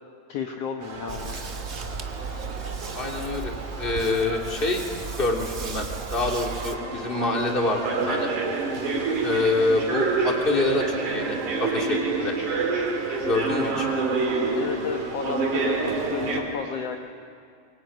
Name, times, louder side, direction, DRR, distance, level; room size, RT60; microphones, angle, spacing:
voice 1, 0.3-1.5 14.5-17.0, left 7 dB, 60° left, 3 dB, 2.1 m, -32 dB
sound 1, 0.8-16.4, right 3 dB, 85° right, 4.9 m, -29 dB
sound 2, 1.1-6.8, right 5 dB, 45° right, 0.8 m, -36 dB
voice 2, 2.9-3.5 3.8-4.8 5.2-8.3 9.2-12.4 13.3-13.9, left 2 dB, 15° left, 0 dB, 3.1 m, -26 dB
26.0 x 23.5 x 9.4 m, 2.3 s
omnidirectional pair, 3.4 m